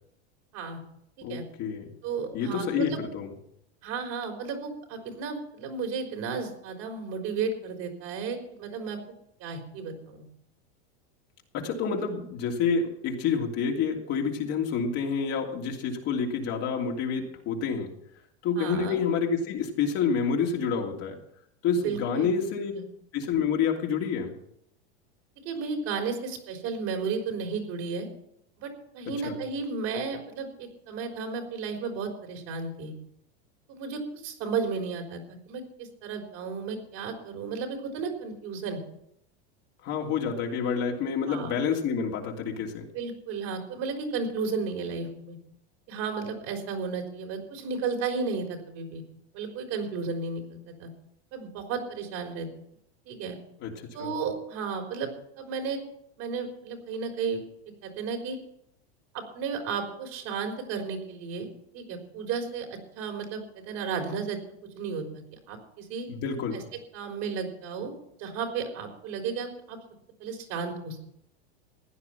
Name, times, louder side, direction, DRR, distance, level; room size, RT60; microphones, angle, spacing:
voice 1, 1.2-1.9 2.3-3.3 11.5-17.9 18.4-21.2 21.6-22.7 23.1-24.3 29.2-29.4 39.8-42.9 53.6-53.7 54.0-54.1 66.1-66.6, left 6 dB, 50° left, 0 dB, 3.0 m, -28 dB
voice 2, 2.0-3.0 3.8-9.0 9.4-10.2 18.6-19.0 21.8-22.3 22.7-22.8 25.4-28.1 28.6-32.9 33.7-38.8 41.3-41.5 42.9-45.4 45.9-49.0 49.3-50.9 51.3-52.5 53.1-53.4 53.9-55.1 55.4-55.8 56.2-57.4 57.8-58.4 59.1-61.5 61.7-62.7 62.9-64.4 64.8-66.1 66.5-66.6 66.9-67.9 68.2-69.8 70.2-71.0, right 5 dB, 55° right, 3 dB, 4.0 m, -33 dB
16.0 x 10.0 x 5.8 m, 0.75 s
hypercardioid pair, 105°, 33 cm